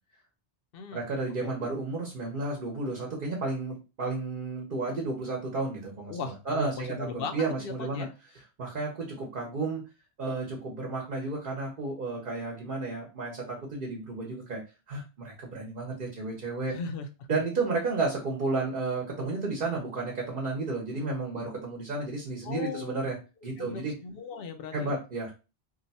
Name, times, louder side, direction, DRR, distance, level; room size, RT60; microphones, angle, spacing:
voice 1, 0.9-8.1 8.6-9.9 10.2-14.6 14.9-16.8 17.3-23.2 23.4-23.9 24.7-25.3, right 3 dB, 55° right, -1 dB, 1.0 m, -32 dB
voice 2, 6.1-8.1 16.7-17.1 22.4-23.0 23.6-24.9, left 4 dB, 70° left, 7 dB, 0.8 m, -37 dB
2.7 x 2.2 x 4.0 m, 0.30 s
omnidirectional pair, 1.0 m